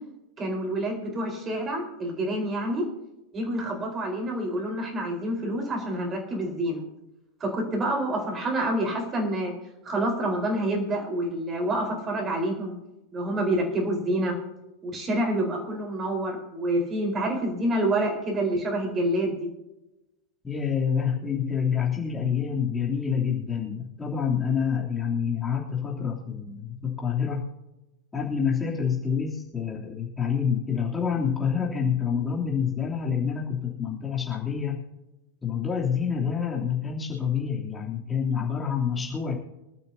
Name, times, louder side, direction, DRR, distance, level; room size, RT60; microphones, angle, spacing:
voice 1, 0.4-2.9 3.3-6.8 7.4-9.5 9.8-12.7 13.1-14.4 14.8-19.5, right 1 dB, 25° right, 2 dB, 4.4 m, -27 dB
voice 2, 20.4-27.4 28.1-34.8 35.4-39.3, left 7 dB, 15° left, -4 dB, 3.1 m, -27 dB
25.0 x 12.0 x 2.8 m, 0.96 s
figure-of-eight pair, 90°, 0 cm